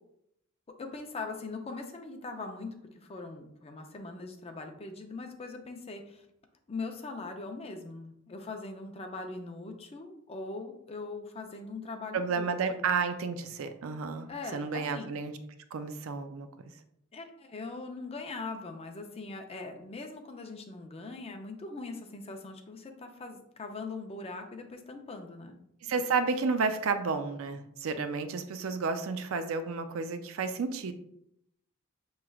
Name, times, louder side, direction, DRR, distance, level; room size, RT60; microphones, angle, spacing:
voice 1, 0.8-6.2 6.7-12.9 14.3-15.1 17.1-25.6, left 3 dB, 30° left, 4 dB, 0.5 m, -41 dB
voice 2, 12.1-15.3 15.7-16.5 25.8-30.9, right 4 dB, 80° right, 9 dB, 0.4 m, -31 dB
5.8 x 3.1 x 2.3 m, 0.75 s
head